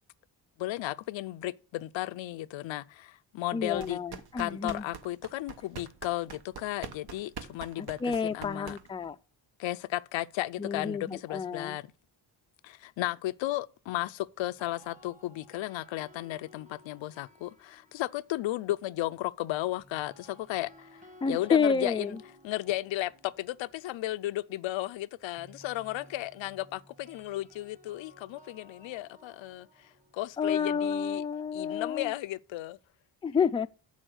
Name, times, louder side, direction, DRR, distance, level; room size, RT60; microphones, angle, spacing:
voice 1, 0.6-4.0 4.4-8.8 9.6-11.9 12.6-22.2 22.4-31.2 31.5-32.8, left 16 dB, 85° left, 0.5 m, -34 dB
voice 2, 3.5-4.8 7.8-9.2 10.6-11.8 21.2-22.2 30.4-32.1 33.2-33.7, left 6 dB, 15° left, 0.4 m, -30 dB
sound 1, 3.7-9.1, right 6 dB, 60° right, 1.1 m, -45 dB
sound 2, 14.4-18.6 19.8-31.7, left 1 dB, 15° right, 1.6 m, -57 dB
7.3 x 6.3 x 7.8 m
cardioid pair, 90°, 44 cm